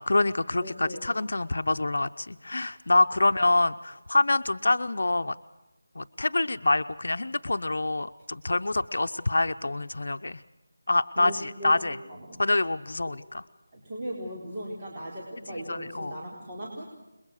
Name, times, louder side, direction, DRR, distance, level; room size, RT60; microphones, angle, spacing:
voice 1, 0.0-5.4 6.0-10.4 10.9-12.0 12.4-13.4 15.7-16.1, left 2 dB, 75° left, 9 dB, 0.8 m, -26 dB
voice 2, 0.6-1.0 3.2-3.4 11.2-11.8 12.1-12.4 13.1-13.2 13.7-16.8, equal, 20° right, -5 dB, 4.4 m, -38 dB
28.5 x 22.0 x 6.5 m, 0.99 s
figure-of-eight pair, 175°, 0 cm